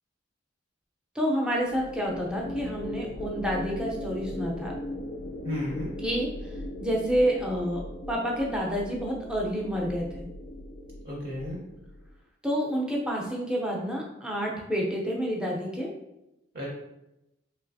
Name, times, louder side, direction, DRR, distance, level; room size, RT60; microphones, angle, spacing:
voice 1, 1.1-4.7 6.0-6.5 6.8-7.8 8.1-10.2 12.4-15.9, equal, 5° right, -2 dB, 0.5 m, -29 dB
sound 1, 1.7-12.1, left 1 dB, 55° left, 0.3 m, -39 dB
voice 2, 5.4-5.9 11.0-11.6 16.5-16.7, left 1 dB, 50° right, -3 dB, 0.8 m, -32 dB
3.1 x 2.9 x 2.7 m, 0.89 s
head